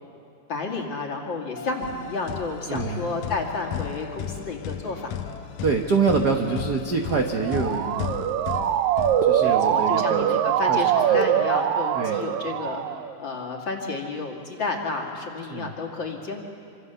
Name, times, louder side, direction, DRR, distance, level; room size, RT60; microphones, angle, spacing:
voice 1, 0.5-5.2 9.4-16.4, left 3 dB, 40° left, 0 dB, 2.8 m, -31 dB
sound 1, 1.6-11.8, left 4 dB, 60° left, 2.5 m, -45 dB
sound 2, 1.8-9.8, left 9 dB, 85° left, 2.2 m, -35 dB
voice 2, 2.7-3.2 5.6-8.1 9.3-10.3 10.7-10.8 11.1-11.2 11.9-12.2 15.5-15.7, right 5 dB, 50° right, 2 dB, 1.2 m, -25 dB
Motor vehicle (road) / Siren, 7.3-13.1, right 10 dB, 80° right, 2.1 m, -23 dB
26.5 x 25.5 x 6.9 m, 2.4 s
omnidirectional pair, 3.4 m